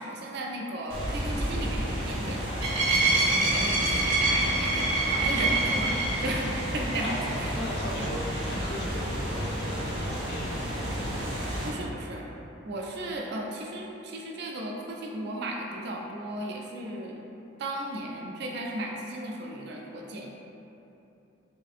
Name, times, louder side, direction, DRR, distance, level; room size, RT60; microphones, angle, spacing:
voice 1, 0.0-2.4 3.1-6.5 6.7-7.6 8.0-8.2 11.6-12.3 12.6-17.2 17.6-20.3, right 1 dB, 55° right, -1 dB, 0.3 m, -35 dB
sound 1, 0.9-11.7, right 1 dB, 85° right, 0.7 m, -28 dB
voice 2, 7.5-10.9, left 1 dB, 55° left, -4 dB, 0.5 m, -38 dB
3.2 x 2.5 x 2.4 m, 2.9 s
head